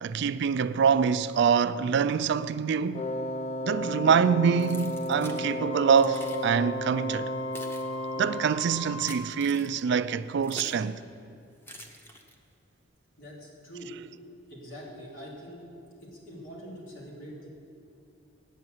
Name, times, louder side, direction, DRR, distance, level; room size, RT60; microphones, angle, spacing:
voice 1, 0.0-3.1 3.6-7.3 8.2-11.0, right 6 dB, 60° right, 0.4 m, -25 dB
Wind instrument woodwind instrument, 2.9-8.7, equal, 35° left, 0.6 m, -33 dB
Keys jangling, 4.6-5.4 6.0-6.5 7.2-10.9 11.6-12.5, equal, 10° left, 0.9 m, -46 dB
Wind instrument woodwind instrument 2, 5.7-9.4, left 4 dB, 65° left, 1.3 m, -41 dB
voice 2, 13.2-13.9 14.5-15.6 16.0-17.5, equal, 85° left, 3.0 m, -44 dB
9.2 x 8.5 x 7.8 m
head